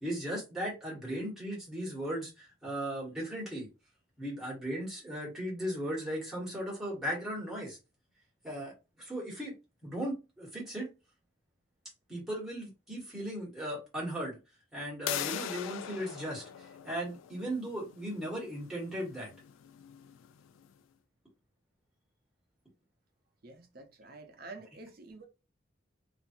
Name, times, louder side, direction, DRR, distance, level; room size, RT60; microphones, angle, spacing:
voice 1, 0.0-3.7 4.2-7.8 8.4-9.5 9.8-10.9 12.1-14.4 14.7-19.3, equal, ahead, 1.4 m, -37 dB
sound 1, 15.1-20.7, left 10 dB, 90° left, 0.3 m, -41 dB
voice 2, 23.4-25.3, right 3 dB, 50° right, 0.6 m, -48 dB
2.5 x 2.5 x 2.6 m
head